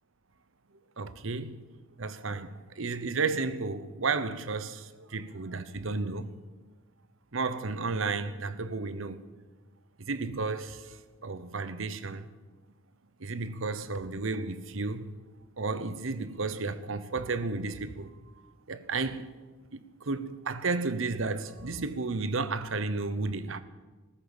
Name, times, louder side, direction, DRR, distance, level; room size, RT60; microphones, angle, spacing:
voice 1, 1.0-1.6 2.0-6.3 7.3-9.2 10.0-10.9 11.2-12.3 13.2-15.1 15.6-18.1 18.7-19.3 19.7-23.6, right 3 dB, 65° right, 0.9 m, -32 dB
14.0 x 14.0 x 7.1 m
head